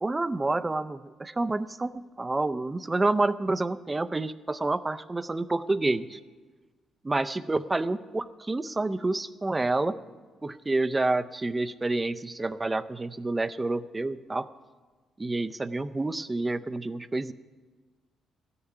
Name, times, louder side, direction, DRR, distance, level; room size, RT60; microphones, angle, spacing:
voice 1, 0.0-6.2 7.1-10.0 10.4-14.5 15.2-17.3, right 2 dB, 20° right, 14 dB, 0.5 m, -28 dB
13.0 x 6.7 x 9.9 m, 1.4 s
cardioid pair, 90°, 0 cm